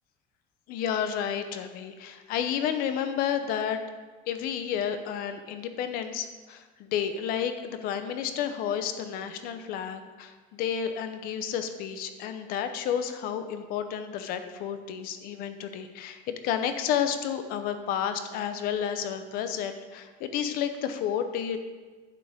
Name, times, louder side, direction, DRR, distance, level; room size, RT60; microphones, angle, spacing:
voice 1, 0.7-3.8 4.3-21.6, left 8 dB, 55° left, 9 dB, 0.9 m, -31 dB
11.0 x 8.8 x 3.6 m, 1.3 s
cardioid pair, 170°, 18 cm